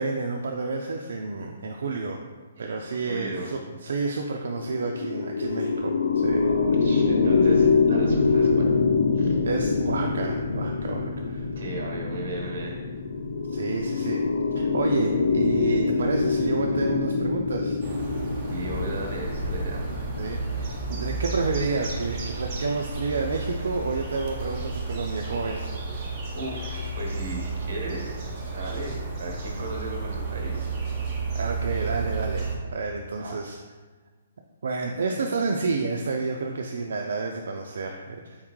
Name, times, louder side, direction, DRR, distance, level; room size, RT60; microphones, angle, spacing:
voice 1, 0.0-2.2 2.6-6.5 9.4-11.5 13.5-14.2 14.5-17.8 20.2-25.7 31.3-33.6 34.6-38.4, right 4 dB, 65° right, 2 dB, 0.3 m, -30 dB
voice 2, 2.6-3.5 6.4-8.7 9.1-9.4 11.6-12.8 18.5-19.8 26.3-28.2 28.5-30.7 33.2-33.4, right 2 dB, 45° right, 0 dB, 1.0 m, -36 dB
sound 1, 4.4-21.9, left 4 dB, 65° left, 0.3 m, -25 dB
sound 2, 17.8-32.6, right 3 dB, 20° right, 0.6 m, -32 dB
4.2 x 3.6 x 3.0 m, 1.4 s
hypercardioid pair, 175°, 0 cm